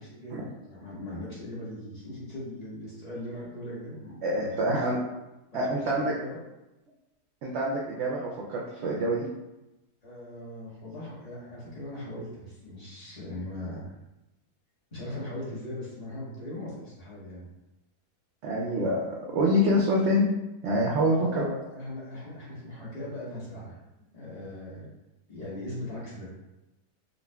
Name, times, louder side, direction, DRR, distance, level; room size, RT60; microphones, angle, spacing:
voice 1, 0.0-4.8 5.5-6.4 10.0-13.9 14.9-17.4 21.1-23.7 24.1-24.9 25.3-26.3, left 1 dB, 25° left, -7 dB, 1.1 m, -39 dB
voice 2, 4.2-5.0 5.5-6.1 7.4-9.3 18.4-20.3 20.6-21.4, equal, 70° right, -3 dB, 0.6 m, -26 dB
5.2 x 2.4 x 2.2 m, 0.97 s
omnidirectional pair, 1.7 m